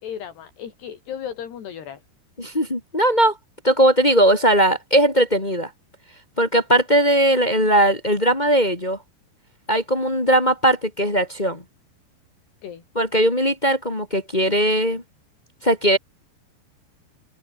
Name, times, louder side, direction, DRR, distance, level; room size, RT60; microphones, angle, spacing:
voice 1, 0.0-2.0 12.6-12.8, left 8 dB, 75° left, 5.2 m, -35 dB
voice 2, 2.4-3.4 3.6-5.7 6.4-9.0 9.7-11.6 12.9-15.0 15.6-16.0, right 1 dB, 20° left, 1.3 m, -19 dB
open air
omnidirectional pair, 4.9 m